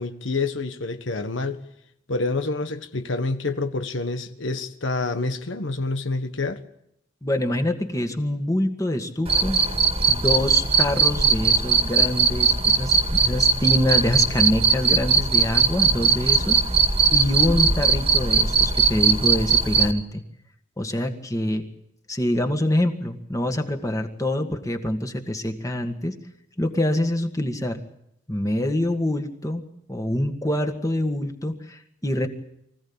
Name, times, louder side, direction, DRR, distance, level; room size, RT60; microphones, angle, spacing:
voice 1, 0.0-1.6 2.1-6.6, left 3 dB, 85° left, 1.5 m, -27 dB
voice 2, 7.2-9.6 10.1-16.6 17.1-20.2 20.8-21.6 22.1-26.2 26.6-27.8 28.3-29.6 29.9-32.3, left 1 dB, 15° left, 1.8 m, -25 dB
Cricket, 9.3-19.9, right 5 dB, 30° right, 1.8 m, -20 dB
24.5 x 16.0 x 8.8 m
head